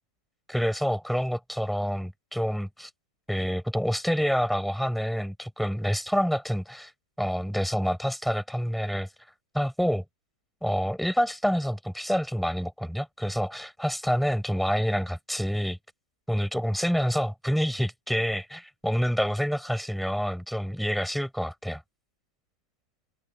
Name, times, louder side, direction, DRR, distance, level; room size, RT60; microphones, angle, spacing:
voice 1, 0.5-2.9 3.3-6.9 7.2-9.1 9.5-10.0 10.6-15.8 16.3-21.8, equal, ahead, 5.3 m, -27 dB
omnidirectional pair, 1.8 m